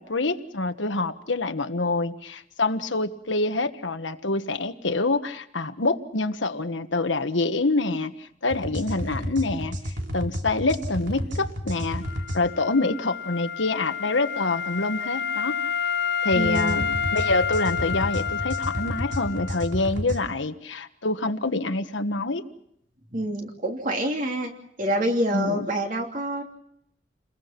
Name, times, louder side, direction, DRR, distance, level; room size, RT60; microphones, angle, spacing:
voice 1, 0.0-12.0 12.3-15.6 16.2-22.4 25.3-25.7, left 2 dB, 80° left, 8 dB, 1.5 m, -26 dB
sound 1, 8.5-12.4 16.3-20.2, equal, 70° right, 3.1 m, -32 dB
Wind instrument woodwind instrument, 12.0-19.8, left 7 dB, 60° left, 1.1 m, -29 dB
voice 2, 16.3-16.9 23.1-24.5 24.8-26.4, right 1 dB, 45° right, 3 dB, 3.1 m, -26 dB
29.0 x 21.5 x 6.0 m, 0.73 s
head